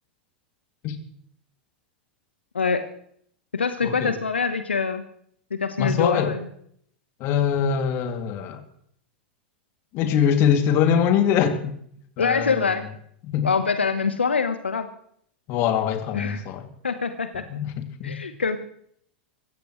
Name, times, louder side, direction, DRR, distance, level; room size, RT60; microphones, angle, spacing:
voice 1, 3.5-5.0 5.5-6.5 12.2-12.9 13.4-14.9 16.1-16.5 16.8-17.4 18.0-18.6, left 5 dB, 85° left, 1.1 m, -24 dB
voice 2, 5.8-6.3 7.2-8.6 9.9-11.8 12.2-12.7 13.2-13.5 15.5-16.7 17.5-18.2, left 8 dB, 45° left, 2.6 m, -23 dB
24.5 x 15.0 x 3.2 m
figure-of-eight pair, 95°, 6 cm